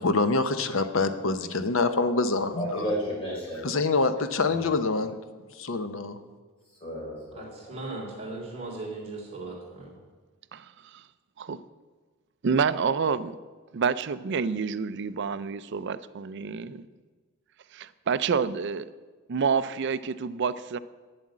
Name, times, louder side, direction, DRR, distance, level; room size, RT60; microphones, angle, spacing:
voice 1, 0.0-2.9 3.6-5.1 5.6-6.2, left 3 dB, 60° left, 10 dB, 0.8 m, -26 dB
voice 2, 2.6-3.6 4.5-4.6 6.8-7.7, equal, 25° left, -4 dB, 4.3 m, -33 dB
voice 3, 7.4-9.9, right 2 dB, 30° right, -3 dB, 3.2 m, -38 dB
voice 4, 12.4-13.3 13.7-16.9 17.7-18.9 19.3-20.8, right 5 dB, 55° right, 14 dB, 0.4 m, -28 dB
8.9 x 7.6 x 8.6 m, 1.4 s
head